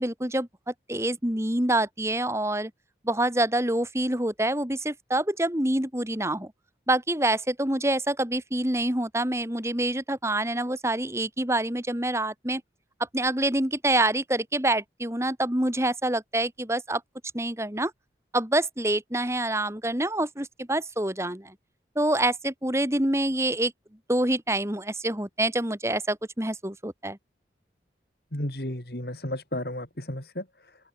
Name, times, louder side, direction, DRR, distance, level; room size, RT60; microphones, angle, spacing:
voice 1, 0.0-2.7 3.0-6.5 6.9-12.6 13.1-17.0 17.3-17.9 18.3-21.5 22.0-23.7 24.1-27.2, right 1 dB, 15° right, 2.4 m, -26 dB
voice 2, 28.3-30.4, left 1 dB, 60° left, 5.0 m, -33 dB
open air
head